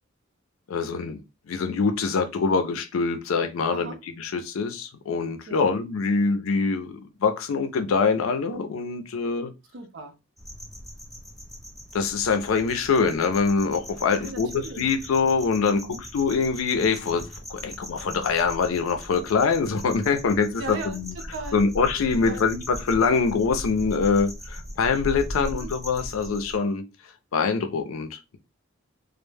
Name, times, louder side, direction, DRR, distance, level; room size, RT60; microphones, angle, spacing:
voice 1, 0.7-1.2 1.5-9.5 11.9-21.1 21.5-26.8 27.3-28.4, left 5 dB, 90° left, 0.4 m, -24 dB
voice 2, 5.5-5.8 9.7-10.1 14.1-14.9 15.6-16.0 20.6-21.7 22.2-22.5 25.4-25.7, right 2 dB, 65° right, 0.6 m, -38 dB
sound 1, 10.4-26.6, equal, ahead, 0.4 m, -39 dB
2.1 x 2.0 x 3.2 m
head